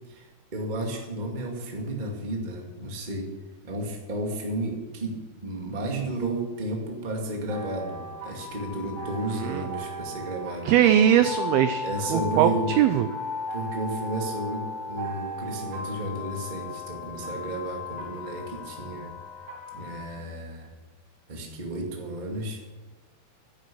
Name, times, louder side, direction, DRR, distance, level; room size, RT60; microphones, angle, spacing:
voice 1, 0.1-3.3 3.6-5.1 5.4-10.7 11.8-12.8 13.5-19.1 19.7-20.7 21.3-22.6, right 1 dB, 30° right, 1 dB, 0.9 m, -32 dB
sound 1, 7.5-20.0, left 2 dB, 65° right, 4.8 m, -36 dB
voice 2, 9.3-9.7 10.7-13.1, right 10 dB, 85° right, 10 dB, 2.1 m, -21 dB
11.0 x 10.0 x 8.6 m, 1.2 s
omnidirectional pair, 5.1 m